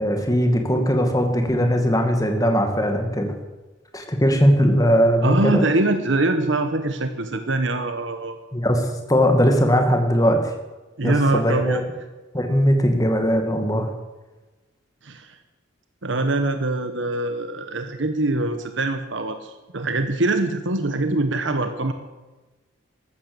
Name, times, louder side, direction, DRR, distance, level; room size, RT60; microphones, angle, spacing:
voice 1, 0.0-3.3 3.9-5.7 8.5-10.5 11.0-11.8 12.3-13.9, equal, 20° left, 5 dB, 2.2 m, -19 dB
voice 2, 5.2-8.3 11.0-11.8 15.0-15.4 16.0-21.9, right 2 dB, 70° right, 8 dB, 1.2 m, -23 dB
14.5 x 12.5 x 7.0 m, 1.2 s
head